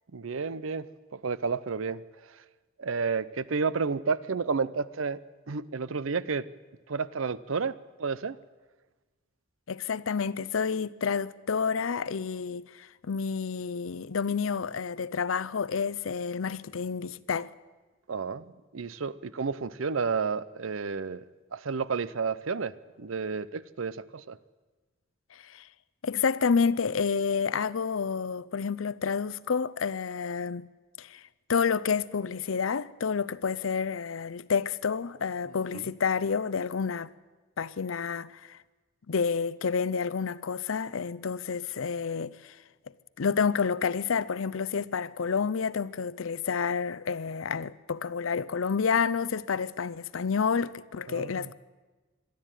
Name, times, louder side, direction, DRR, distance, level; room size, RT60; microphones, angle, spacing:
voice 1, 0.1-2.0 2.3-2.4 2.8-5.2 5.5-6.5 6.9-8.4 18.1-21.2 21.5-24.4 35.7-35.8 51.1-51.5, right 5 dB, 85° right, 0.6 m, -31 dB
voice 2, 9.7-17.5 25.3-25.6 26.0-30.7 31.0-31.2 31.5-37.1 37.6-38.6 39.1-42.6 43.2-51.5, left 6 dB, 85° left, 0.6 m, -29 dB
22.0 x 13.0 x 9.0 m
head